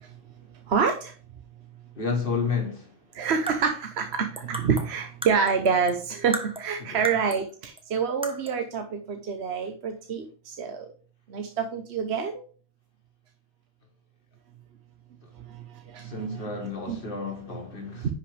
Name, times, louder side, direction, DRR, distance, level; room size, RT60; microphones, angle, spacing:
voice 1, 0.7-1.1 3.1-10.9 11.3-12.4 15.9-17.0, right 6 dB, 75° right, 1.1 m, -27 dB
voice 2, 2.0-2.9 6.9-7.0 16.1-18.1, left 5 dB, 55° left, 1.9 m, -30 dB
sound 1, 3.5-6.0 6.3-7.5 7.8-7.9 8.2-8.6, right 1 dB, 5° right, 0.9 m, -37 dB
10.5 x 5.7 x 3.3 m
omnidirectional pair, 1.1 m